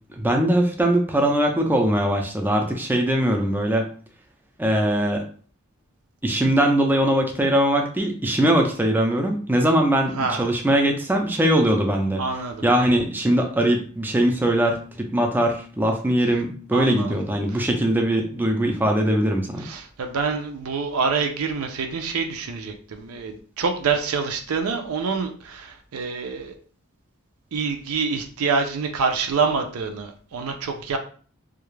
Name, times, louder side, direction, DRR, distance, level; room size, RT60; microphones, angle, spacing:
voice 1, 0.1-3.9 4.6-5.3 6.2-12.2 12.6-19.7, right 1 dB, 10° right, 2 dB, 0.3 m, -21 dB
voice 2, 12.2-12.6 16.7-17.2 19.6-26.5 27.5-31.0, right 5 dB, 90° right, 5 dB, 0.5 m, -26 dB
2.3 x 2.0 x 3.1 m, 0.43 s
head